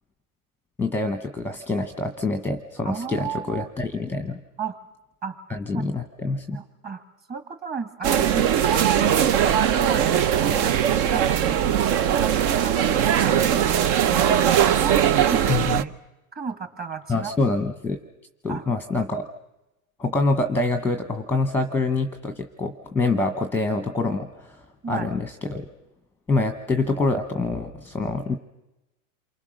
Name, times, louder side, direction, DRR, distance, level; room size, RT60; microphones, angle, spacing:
voice 1, 0.8-4.4 5.5-6.6 15.5-15.8 17.1-18.0 18.4-19.3 20.0-24.6 24.9-25.7 26.3-28.4, left 3 dB, 5° left, 7 dB, 1.1 m, -26 dB
voice 2, 2.8-3.7 4.6-4.8 5.2-5.4 5.7-5.9 6.5-7.0 7.3-10.7 11.0-11.8 12.2-12.3 12.6-15.9 16.3-17.3 18.5-18.6 24.8-25.1, right 6 dB, 20° right, 7 dB, 2.7 m, -33 dB
sound 1, 8.0-15.8, right 9 dB, 40° right, 0.8 m, -20 dB
28.0 x 24.0 x 6.4 m, 0.96 s
supercardioid pair, 135°, 43 cm